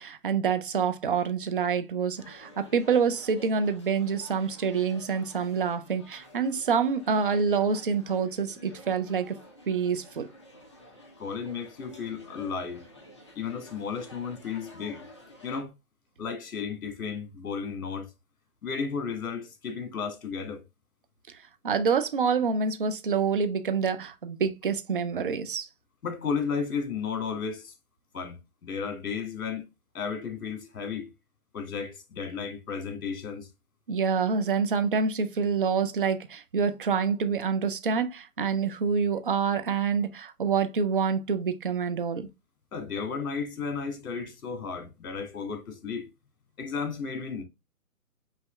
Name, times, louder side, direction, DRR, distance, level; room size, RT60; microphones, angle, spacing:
voice 1, 0.0-9.4 9.7-10.3 21.3-21.4 21.6-25.7 33.9-42.3, right 6 dB, 40° right, 0.4 m, -27 dB
sound 1, 2.2-15.6, left 1 dB, 20° left, 0.5 m, -51 dB
voice 2, 11.2-12.9 13.4-15.0 15.4-15.7 16.2-18.1 18.6-20.6 26.0-27.7 28.1-29.7 29.9-31.1 31.5-33.5 42.7-46.1 46.6-47.4, left 6 dB, 65° left, 1.8 m, -33 dB
5.5 x 2.6 x 3.1 m
hypercardioid pair, 150°, 45 cm